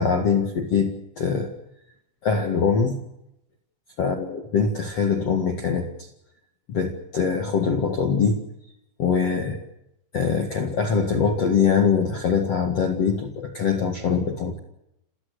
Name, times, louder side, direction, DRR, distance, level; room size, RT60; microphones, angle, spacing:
voice 1, 0.0-1.5 2.2-3.0 4.0-5.9 6.7-8.4 9.0-9.6 10.1-14.6, left 5 dB, 65° left, 5 dB, 1.6 m, -23 dB
29.0 x 18.0 x 6.5 m, 0.83 s
omnidirectional pair, 5.7 m